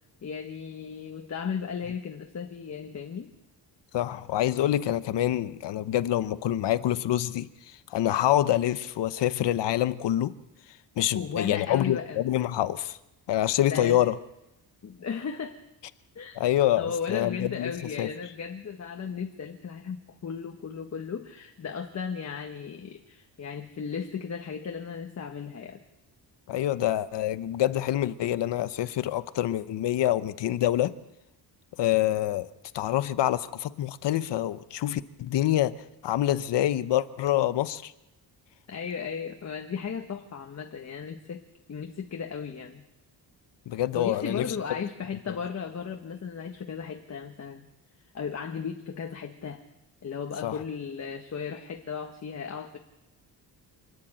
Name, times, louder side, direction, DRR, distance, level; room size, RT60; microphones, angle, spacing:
voice 1, 0.2-3.3 11.1-12.3 13.6-14.0 14.8-15.6 16.1-16.4 16.8-25.8 38.7-41.4 41.7-42.8 43.9-47.7 48.1-49.6 50.0-52.8, left 6 dB, 40° left, 4 dB, 1.5 m, -35 dB
voice 2, 3.9-7.5 7.9-10.3 11.0-13.0 13.3-14.2 16.3-17.7 18.0-18.1 26.5-30.9 31.8-32.5 32.7-35.7 36.0-37.9 43.7-44.4 50.4-50.6, left 13 dB, 80° left, 14 dB, 1.0 m, -26 dB
27.5 x 10.5 x 8.9 m, 0.94 s
wide cardioid pair, 150°, 41 cm